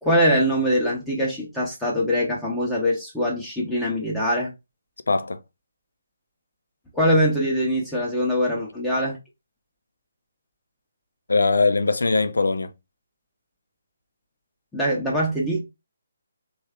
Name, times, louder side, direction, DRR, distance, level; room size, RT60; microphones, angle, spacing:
voice 1, 0.0-4.5 6.9-9.2 14.7-15.6, equal, 5° left, 0.7 m, -23 dB
voice 2, 5.1-5.4 11.3-12.7, left 3 dB, 70° left, 0.4 m, -21 dB
3.1 x 2.3 x 3.4 m
figure-of-eight pair, 145°, 0 cm